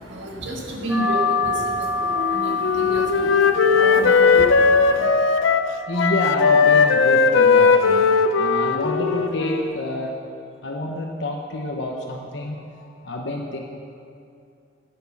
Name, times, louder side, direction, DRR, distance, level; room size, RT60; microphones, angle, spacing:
voice 1, 0.0-5.1, right 1 dB, 70° right, 0 dB, 1.7 m, -30 dB
sound 1, 0.9-10.0, left 3 dB, 5° right, 2.5 m, -29 dB
Wind instrument woodwind instrument, 2.2-5.7 6.0-9.8, left 5 dB, 85° left, 0.6 m, -18 dB
voice 2, 5.9-10.1 10.6-13.6, left 1 dB, 65° left, 1 dB, 0.9 m, -28 dB
9.5 x 8.7 x 7.1 m, 2.5 s
head